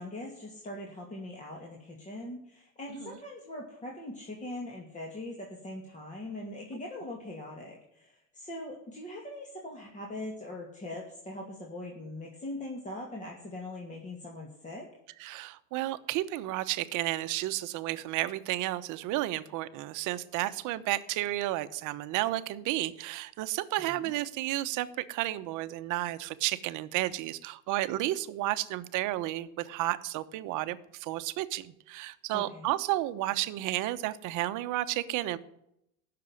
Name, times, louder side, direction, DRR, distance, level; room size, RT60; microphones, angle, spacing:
voice 1, 0.0-14.9 23.8-24.1 32.3-32.7, left 1 dB, 20° left, -1 dB, 2.5 m, -41 dB
voice 2, 15.2-35.4, right 16 dB, 50° right, 12 dB, 1.0 m, -32 dB
16.5 x 6.9 x 9.7 m, 0.80 s
supercardioid pair, 140°, 39 cm